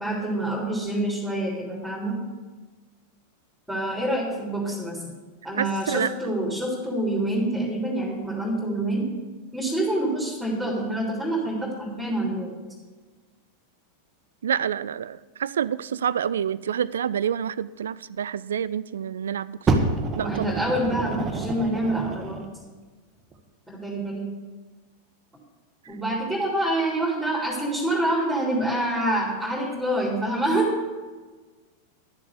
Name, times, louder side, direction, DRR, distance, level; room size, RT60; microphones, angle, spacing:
voice 1, 0.0-2.2 3.7-5.0 5.4-9.1 9.5-12.5 20.2-22.4 23.7-24.3 25.9-30.8, right 1 dB, 5° right, -5 dB, 3.5 m, -26 dB
voice 2, 5.6-6.3 14.4-19.7 20.2-20.6, right 8 dB, 65° right, 19 dB, 0.3 m, -28 dB
Fire, 19.7-22.5 23.3-23.4, right 3 dB, 20° right, 1.4 m, -27 dB
12.0 x 7.4 x 6.8 m, 1.3 s
figure-of-eight pair, 90°, 0 cm